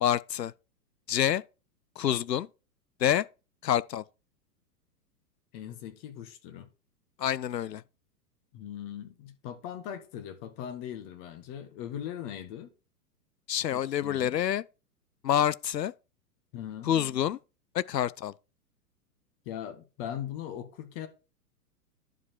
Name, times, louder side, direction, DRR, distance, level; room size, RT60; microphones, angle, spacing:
voice 1, 0.0-0.5 1.1-1.4 2.0-2.5 3.0-3.3 3.6-4.0 7.2-7.8 13.5-14.6 15.2-15.9 16.8-17.4 17.7-18.3, left 10 dB, 90° left, 0.5 m, -27 dB
voice 2, 5.5-6.7 8.5-12.7 13.7-14.4 16.5-16.9 19.4-21.1, left 10 dB, 35° left, 1.5 m, -40 dB
11.0 x 5.0 x 4.6 m
figure-of-eight pair, 110°, 48 cm